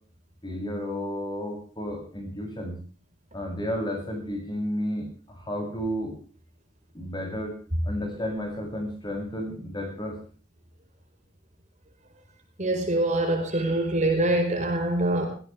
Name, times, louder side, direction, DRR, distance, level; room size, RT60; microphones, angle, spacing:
voice 1, 0.4-2.7 3.3-6.1 6.9-7.5 7.8-10.2, equal, 25° left, 2 dB, 7.9 m, -32 dB
voice 2, 12.6-15.3, right 1 dB, 40° right, 4 dB, 4.9 m, -24 dB
20.0 x 17.0 x 3.5 m, 0.42 s
head